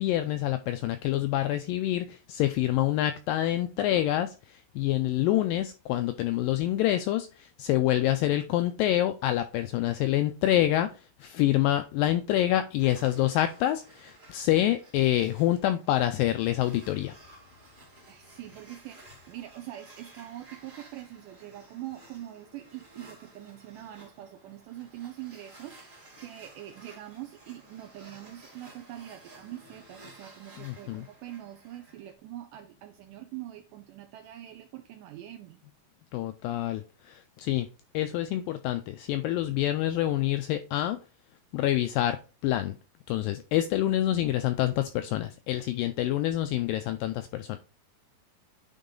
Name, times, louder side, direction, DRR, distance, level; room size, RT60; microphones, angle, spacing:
voice 1, 0.0-17.2 30.6-31.0 36.1-37.7 37.9-41.0 41.5-42.8 43.1-47.6, left 13 dB, 85° left, 2.0 m, -27 dB
sound 1, 12.8-32.1, right 2 dB, 30° right, 1.1 m, -54 dB
voice 2, 18.1-35.6, right 13 dB, 80° right, 1.9 m, -43 dB
9.2 x 4.0 x 3.7 m
omnidirectional pair, 4.5 m